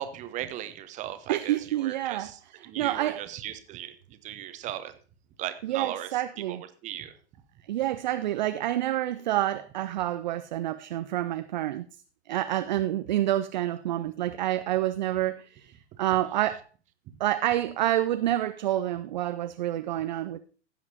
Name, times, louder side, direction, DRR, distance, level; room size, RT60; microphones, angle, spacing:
voice 1, 0.0-4.9 5.4-7.2, right 12 dB, 20° right, 0.9 m, -38 dB
voice 2, 1.3-2.3 2.8-3.2 5.6-6.6 7.7-11.9 12.3-16.6 17.2-20.4, right 13 dB, 40° right, 0.4 m, -28 dB
16.0 x 7.6 x 2.9 m
figure-of-eight pair, 110°, 35 cm